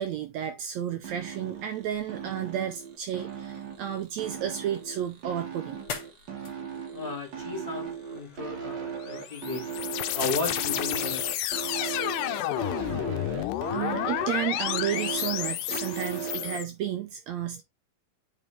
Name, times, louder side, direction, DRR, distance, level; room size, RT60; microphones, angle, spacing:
voice 1, 0.0-5.8 13.7-17.6, right 10 dB, 80° right, 1.6 m, -32 dB
sound 1, 1.0-16.6, right 6 dB, 60° right, 1.1 m, -37 dB
sound 2, 4.2-15.2, left 5 dB, 55° left, 1.3 m, -49 dB
voice 2, 6.9-9.7 10.1-11.3, left 3 dB, 35° left, 0.9 m, -34 dB
sound 3, 9.0-16.6, left 14 dB, 85° left, 2.2 m, -31 dB
8.7 x 3.6 x 3.2 m
omnidirectional pair, 3.8 m